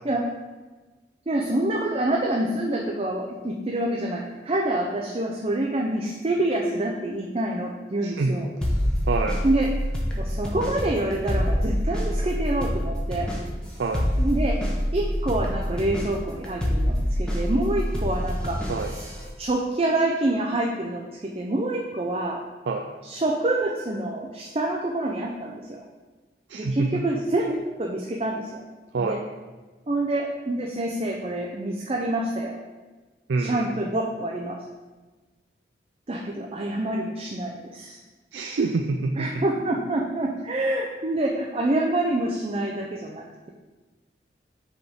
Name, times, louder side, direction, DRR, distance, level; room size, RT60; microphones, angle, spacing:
voice 1, 1.3-8.5 9.4-9.7 10.2-13.3 14.2-14.6 14.9-19.1 19.4-22.4 23.0-25.8 26.5-28.6 29.0-29.2 29.9-32.6 33.4-34.6 36.1-38.0 39.1-43.5, right 1 dB, 35° right, 0 dB, 0.5 m, -27 dB
voice 2, 8.0-8.3 9.1-9.4 13.8-14.1 18.7-18.9 22.7-22.9 26.5-27.0 28.9-29.2 33.3-33.7 38.3-39.4, right 3 dB, 85° right, 3 dB, 0.4 m, -26 dB
sound 1, 8.6-19.3, equal, 5° left, 0.9 m, -26 dB
6.0 x 3.7 x 5.2 m, 1.3 s
head